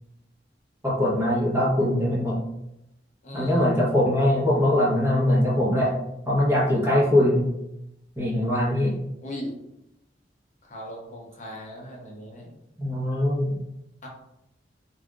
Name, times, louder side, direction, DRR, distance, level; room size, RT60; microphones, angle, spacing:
voice 1, 0.8-2.4 3.3-6.0 6.3-7.5 8.2-8.9 12.8-13.6, left 1 dB, 15° right, -6 dB, 1.0 m, -22 dB
voice 2, 3.2-3.6 9.2-9.6 10.6-12.5 14.0-14.1, equal, 45° left, -2 dB, 0.8 m, -38 dB
3.2 x 2.6 x 2.4 m, 0.84 s
head